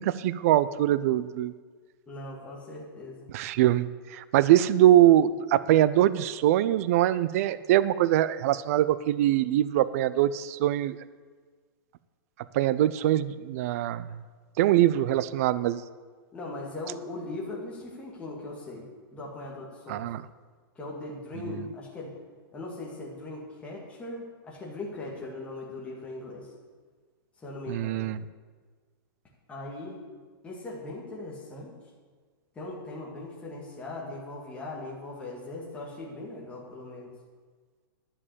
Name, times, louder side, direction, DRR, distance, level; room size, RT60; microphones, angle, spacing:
voice 1, 0.0-1.5 3.3-11.0 12.5-14.1 14.6-15.8 19.9-20.2 27.7-28.2, right 13 dB, 40° right, 15 dB, 0.4 m, -23 dB
voice 2, 2.1-3.3 16.3-18.8 19.1-20.1 20.8-22.1 22.5-26.5 27.4-28.1 29.5-30.0 30.4-31.8 32.6-37.1, left 2 dB, 10° left, -3 dB, 2.1 m, -39 dB
11.0 x 7.5 x 8.3 m, 1.5 s
supercardioid pair, 170°, 12 cm